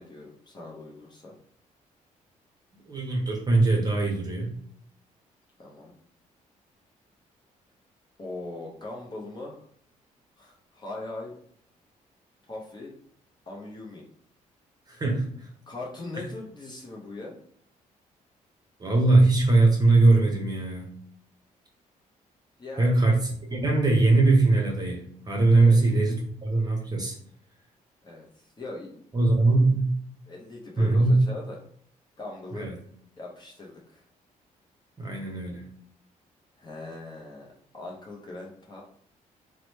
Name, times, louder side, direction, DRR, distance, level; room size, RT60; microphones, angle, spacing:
voice 1, 0.0-1.3 5.6-5.9 8.2-9.7 10.4-11.3 12.5-13.0 13.5-14.0 15.7-17.4 22.6-23.1 25.5-25.8 28.0-29.0 30.3-31.6 32.2-32.7 33.2-34.0 36.6-37.5 37.7-38.8, left 2 dB, 30° left, -2 dB, 0.7 m, -40 dB
voice 2, 2.9-4.5 14.9-15.5 18.8-20.9 22.8-23.1 23.5-27.2 29.1-29.9 30.8-31.2 32.5-32.8 35.0-35.7, right 2 dB, 25° right, 0 dB, 0.7 m, -21 dB
2.9 x 2.1 x 3.1 m, 0.64 s
cardioid pair, 85°, 14 cm